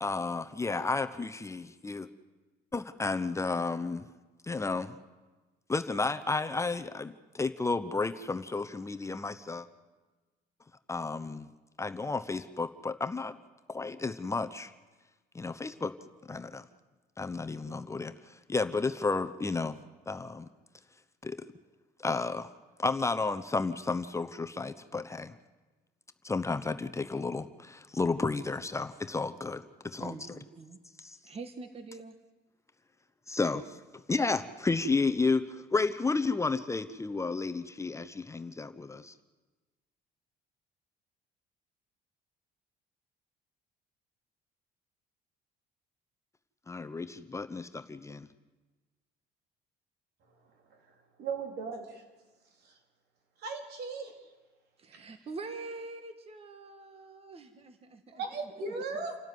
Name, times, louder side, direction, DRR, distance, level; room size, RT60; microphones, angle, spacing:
voice 1, 0.0-2.1 2.7-4.1 4.4-4.9 5.7-9.7 10.9-11.5 11.8-13.3 13.7-14.7 15.3-15.9 16.3-16.6 17.2-19.8 20.1-20.5 21.2-21.4 22.0-22.5 22.8-25.3 26.2-30.4 31.0-31.2 33.3-33.8 34.1-39.1 46.7-48.3, left 3 dB, 15° left, 9 dB, 0.9 m, -32 dB
voice 2, 30.0-30.8 31.2-32.2 54.8-58.2, right 3 dB, 35° right, 8 dB, 1.6 m, -44 dB
voice 3, 51.2-52.0 53.4-54.1 54.9-55.1 58.1-59.2, right 4 dB, 70° right, 3 dB, 4.0 m, -37 dB
28.5 x 12.5 x 9.6 m, 1.2 s
cardioid pair, 110°, 17 cm